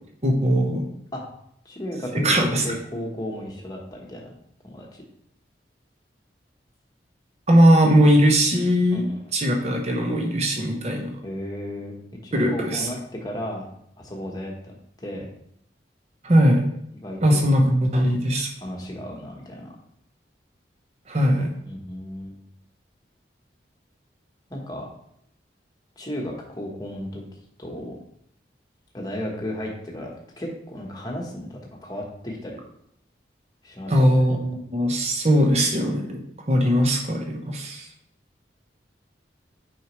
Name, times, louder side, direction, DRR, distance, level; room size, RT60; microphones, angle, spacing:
voice 1, 0.2-0.8 2.2-2.6 7.5-9.0 9.3-11.2 12.3-12.9 16.2-16.6 17.2-18.5 21.1-21.5 33.9-36.2 36.5-37.8, equal, 35° right, 1 dB, 0.9 m, -19 dB
voice 2, 1.6-4.3 4.6-4.9 8.9-9.2 11.2-13.7 14.0-15.3 16.9-17.5 18.6-19.7 21.7-22.4 24.5-24.9 26.0-27.2 27.6-28.0 28.9-32.6 33.6-34.1, left 1 dB, 20° left, -1 dB, 1.1 m, -34 dB
6.3 x 4.9 x 3.1 m, 0.72 s
head